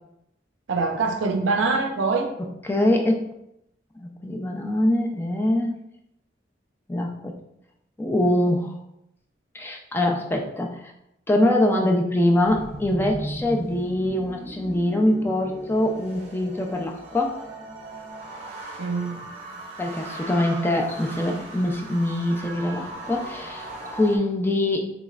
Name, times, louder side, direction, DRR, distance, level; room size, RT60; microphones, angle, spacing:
voice 1, 0.7-2.3 18.8-19.3, right 4 dB, 90° right, 5 dB, 0.5 m, -24 dB
voice 2, 2.6-3.3 4.0-5.8 6.9-7.3 8.0-8.8 9.5-10.9 11.3-17.4 19.8-24.9, left 1 dB, 10° left, 2 dB, 0.3 m, -23 dB
sound 1, 12.4-24.2, right 1 dB, 35° right, 0.6 m, -38 dB
3.9 x 3.1 x 2.3 m, 0.81 s
head